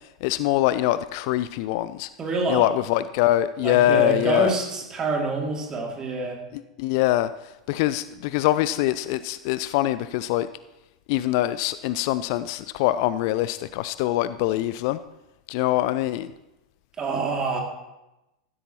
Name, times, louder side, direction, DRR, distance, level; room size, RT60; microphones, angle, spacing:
voice 1, 0.2-2.1 2.5-4.5 6.8-7.3 7.7-10.5 11.1-15.0 15.5-16.3, left 14 dB, 45° left, 14 dB, 0.3 m, -23 dB
voice 2, 2.2-2.7 3.6-6.4 17.0-17.6, right 3 dB, 20° right, 1 dB, 2.4 m, -26 dB
15.0 x 12.5 x 2.9 m, 0.96 s
figure-of-eight pair, 90°, 3 cm